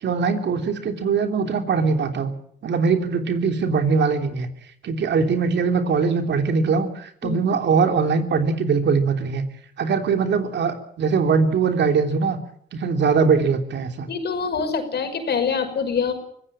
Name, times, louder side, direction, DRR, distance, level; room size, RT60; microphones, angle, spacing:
voice 1, 0.0-2.3 2.6-4.5 4.8-9.4 9.8-12.4 12.7-14.1, right 5 dB, 65° right, 6 dB, 3.3 m, -21 dB
voice 2, 14.1-16.1, left 5 dB, 55° left, 7 dB, 5.7 m, -25 dB
24.5 x 16.0 x 8.8 m, 0.66 s
cardioid pair, 90°, 20 cm